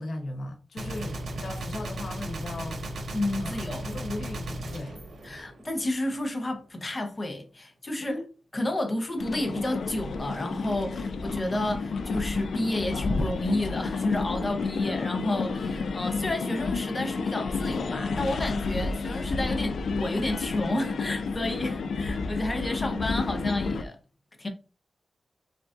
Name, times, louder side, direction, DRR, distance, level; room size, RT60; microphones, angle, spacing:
voice 1, 0.0-5.0 8.0-8.2, left 2 dB, 65° left, 0.8 m, -37 dB
Gunshot gunfire, 0.8-6.0, right 1 dB, 90° right, 1.2 m, -36 dB
voice 2, 3.1-3.8 5.2-8.2 8.5-24.0 24.4-24.5, left 1 dB, 25° left, 0.8 m, -31 dB
sound 1, 9.2-23.8, left 4 dB, 90° left, 0.4 m, -31 dB
5.0 x 3.9 x 2.4 m
wide cardioid pair, 155°, 0 cm